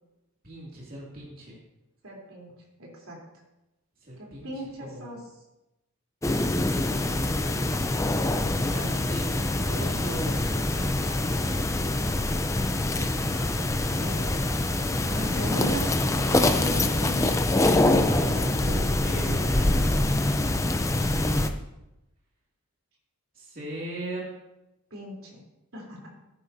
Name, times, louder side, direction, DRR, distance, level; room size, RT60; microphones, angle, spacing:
voice 1, 0.4-1.6 4.0-4.5 4.8-5.2 6.7-7.8 8.3-10.9 11.3-11.5 13.1-13.5 14.0-14.4 15.2-15.7 17.9-19.7 23.3-24.3, right 1 dB, 40° right, -5 dB, 2.6 m, -39 dB
voice 2, 2.0-2.5 2.8-3.2 4.4-5.2 11.1-11.3 13.9-14.4 15.0-15.9 16.2-17.4 24.9-25.4 25.7-26.1, equal, 65° right, -2 dB, 3.6 m, -37 dB
sound 1, 6.2-21.5, left 2 dB, 15° left, 0.5 m, -25 dB
16.5 x 10.0 x 2.8 m, 0.94 s
head